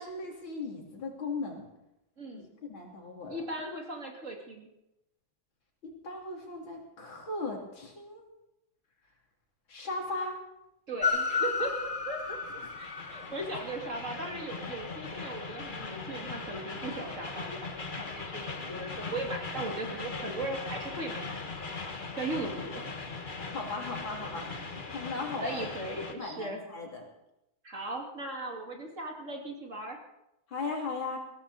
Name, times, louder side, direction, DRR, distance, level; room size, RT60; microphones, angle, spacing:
voice 1, 0.0-1.7 2.3-3.4 5.8-8.2 9.7-10.4 12.6-12.7 23.5-24.5 24.9-25.7 26.2-27.0 30.5-31.2, left 3 dB, 70° left, 0 dB, 3.8 m, -37 dB
voice 2, 2.2-2.5 3.3-4.7 10.9-12.4 12.7-21.3 22.1-22.8 25.4-26.6 27.6-30.0, right 2 dB, 35° right, 1 dB, 2.8 m, -38 dB
Train, 11.0-26.1, left 4 dB, 30° left, 1.3 m, -37 dB
21.0 x 16.5 x 4.2 m, 0.87 s
omnidirectional pair, 2.2 m